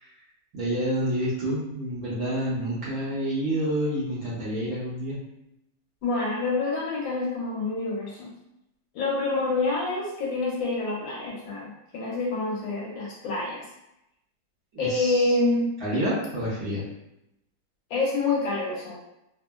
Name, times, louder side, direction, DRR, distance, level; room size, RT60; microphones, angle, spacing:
voice 1, 0.5-5.2 14.7-15.4 15.8-16.8, equal, 55° right, -9 dB, 1.2 m, -28 dB
voice 2, 6.0-8.3 8.9-13.6 14.8-15.7 17.9-19.0, left 3 dB, 75° left, -4 dB, 1.4 m, -27 dB
3.4 x 2.1 x 2.2 m, 0.87 s
omnidirectional pair, 2.1 m